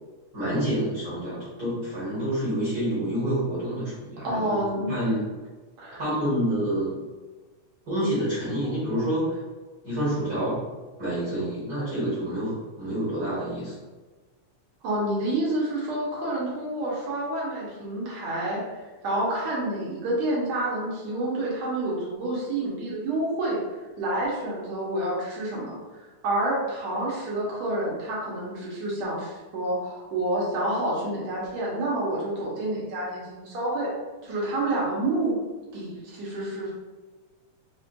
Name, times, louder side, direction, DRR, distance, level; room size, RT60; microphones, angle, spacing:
voice 1, 0.3-4.5 4.9-5.3 6.0-7.0 7.9-9.4 9.8-10.6 11.0-13.7, right 1 dB, 45° right, -9 dB, 1.5 m, -28 dB
voice 2, 4.2-5.0 5.8-6.0 14.8-18.7 19.0-23.6 24.0-25.8 26.2-33.9 34.2-35.3 35.7-36.7, right 1 dB, 70° right, -5 dB, 2.1 m, -28 dB
5.1 x 2.4 x 2.5 m, 1.3 s
omnidirectional pair, 3.3 m